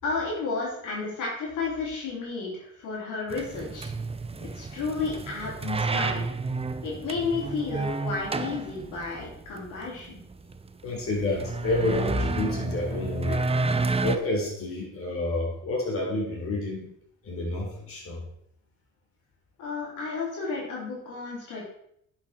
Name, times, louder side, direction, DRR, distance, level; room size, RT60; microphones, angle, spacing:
voice 1, 0.0-3.9 4.4-6.3 6.8-10.2 19.6-21.6, left 4 dB, 85° left, -4 dB, 3.6 m, -32 dB
sound 1, 3.3-14.2, right 3 dB, 20° right, 0.7 m, -31 dB
voice 2, 10.8-13.5 14.0-16.8 17.2-18.2, left 2 dB, 45° left, -3 dB, 4.1 m, -29 dB
10.0 x 6.6 x 4.4 m, 0.74 s
cardioid pair, 90°, 30 cm